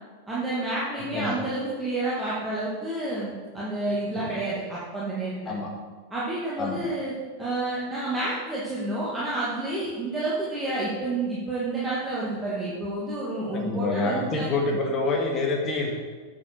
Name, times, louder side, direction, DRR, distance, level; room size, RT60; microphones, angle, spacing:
voice 1, 0.3-5.5 6.1-7.1 7.4-14.5, right 2 dB, 10° right, -8 dB, 2.0 m, -29 dB
voice 2, 0.9-1.4 3.9-4.3 5.5-5.7 6.6-6.8 13.5-15.9, left 3 dB, 25° left, 0 dB, 1.9 m, -27 dB
9.2 x 7.1 x 4.5 m, 1.4 s
figure-of-eight pair, 90°, 0 cm